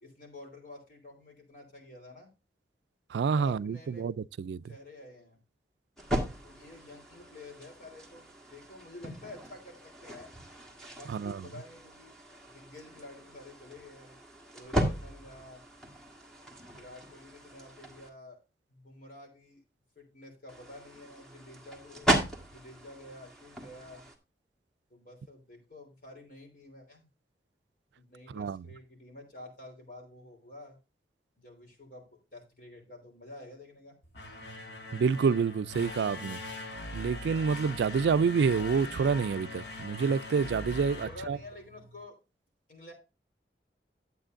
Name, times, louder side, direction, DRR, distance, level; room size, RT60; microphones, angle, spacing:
voice 1, 0.0-2.3 3.3-4.1 4.6-5.4 6.4-10.3 10.9-12.2 12.4-14.2 14.5-15.6 16.7-18.4 18.7-19.6 19.9-22.1 22.5-24.0 24.9-27.1 28.0-30.8 31.4-34.0 41.0-42.2 42.7-42.9, left 2 dB, 50° left, 3.2 m, -50 dB
voice 2, 3.1-4.6 11.1-11.4 28.3-28.6 34.9-36.4 36.9-41.4, right 5 dB, 85° right, 0.3 m, -28 dB
sound 1, 6.0-18.1 20.5-24.2, right 1 dB, 5° left, 1.5 m, -37 dB
sound 2, 34.0-42.0, left 2 dB, 80° left, 1.7 m, -42 dB
11.5 x 8.2 x 2.5 m
head